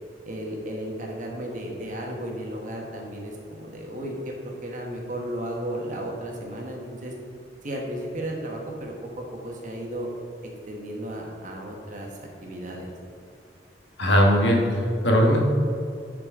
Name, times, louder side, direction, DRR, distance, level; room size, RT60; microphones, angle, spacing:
voice 1, 0.2-7.1 7.6-10.1 10.7-12.9, right 1 dB, 45° right, 0 dB, 1.3 m, -34 dB
voice 2, 14.0-15.5, equal, 85° left, 0 dB, 1.4 m, -19 dB
10.5 x 5.0 x 3.7 m, 2.5 s
head